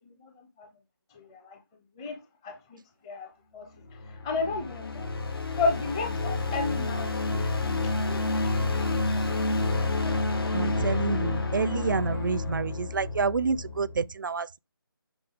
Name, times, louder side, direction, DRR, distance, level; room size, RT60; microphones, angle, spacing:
voice 1, 0.1-0.7 1.1-1.6 2.0-2.2 2.4-3.7 4.2-5.1 5.6-7.5 8.1-8.7 10.0-10.6, left 3 dB, 15° left, 0.6 m, -33 dB
sound 1, 3.8-14.1, left 3 dB, 75° left, 1.9 m, -29 dB
voice 2, 10.5-14.6, right 5 dB, 55° right, 0.5 m, -28 dB
7.9 x 5.4 x 3.5 m
figure-of-eight pair, 165°, 13 cm